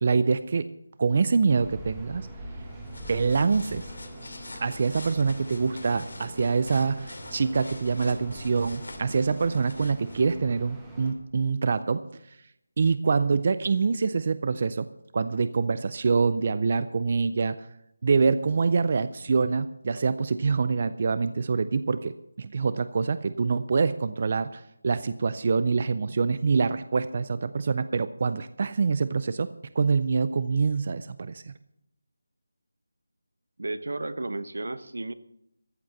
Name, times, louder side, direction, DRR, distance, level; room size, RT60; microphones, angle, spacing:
voice 1, 0.0-0.7 1.0-2.3 3.1-3.9 4.6-12.1 12.8-14.9 15.1-17.7 18.0-29.5 29.8-31.5, right 4 dB, 30° right, 14 dB, 0.4 m, -25 dB
sound 1, 1.5-11.1, right 1 dB, 5° right, 1.4 m, -43 dB
sound 2, 2.6-10.4, left 2 dB, 90° left, 2.7 m, -44 dB
voice 2, 33.6-35.1, right 2 dB, 80° right, 13 dB, 1.0 m, -33 dB
14.0 x 7.8 x 6.6 m, 0.79 s
figure-of-eight pair, 175°, 0 cm